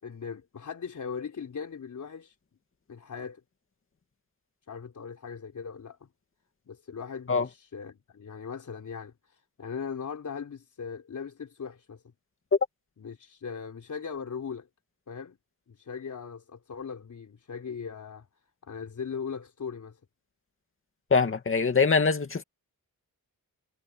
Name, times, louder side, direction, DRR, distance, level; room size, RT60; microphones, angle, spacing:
voice 1, 0.0-2.3 2.9-3.4 4.7-6.1 6.7-9.1 9.6-12.0 13.0-14.7 15.1-15.4 15.7-18.3 18.6-20.0, left 6 dB, 55° left, 3.9 m, -39 dB
voice 2, 21.1-22.4, left 5 dB, 35° left, 2.3 m, -23 dB
wide cardioid pair, 140°, 36 cm